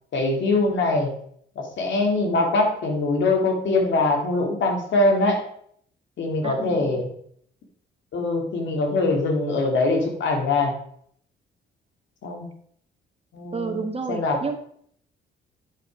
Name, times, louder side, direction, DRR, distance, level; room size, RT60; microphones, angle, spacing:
voice 1, 0.1-1.1 1.6-5.4 6.2-7.1 8.1-10.7 12.2-12.5 13.3-14.4, left 2 dB, 70° left, 2 dB, 2.6 m, -23 dB
voice 2, 6.4-7.0 13.5-14.6, right 4 dB, 30° right, 6 dB, 1.5 m, -30 dB
10.5 x 5.6 x 5.2 m, 0.66 s
cardioid pair, 90°, 20 cm